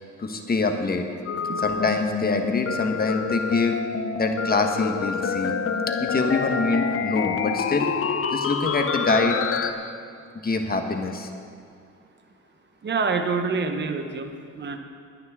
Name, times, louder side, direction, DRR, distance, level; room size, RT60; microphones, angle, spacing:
voice 1, 0.2-1.0 1.6-3.8 4.1-5.5 6.0-7.9 8.3-9.4 10.4-11.3, left 3 dB, 30° left, 4 dB, 1.4 m, -25 dB
sound 1, 1.3-9.7, left 6 dB, 45° left, 0.8 m, -27 dB
voice 2, 12.8-14.8, right 4 dB, 35° right, 6 dB, 1.0 m, -27 dB
20.5 x 9.4 x 3.7 m, 2.3 s
cardioid pair, 90°, 30 cm